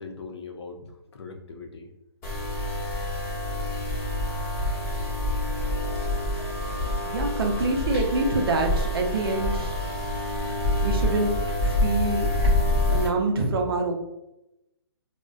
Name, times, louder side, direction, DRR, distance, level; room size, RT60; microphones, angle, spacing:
voice 1, 0.0-1.9 5.6-5.8, left 4 dB, 75° left, 4 dB, 0.5 m, -41 dB
sound 1, 2.2-13.1, left 1 dB, 20° left, 0.8 m, -27 dB
voice 2, 7.0-9.7 10.8-11.4 11.6-12.3 12.9-13.9, right 2 dB, 55° right, 2 dB, 0.6 m, -26 dB
2.4 x 2.1 x 2.4 m, 0.88 s
hypercardioid pair, 165°, 14 cm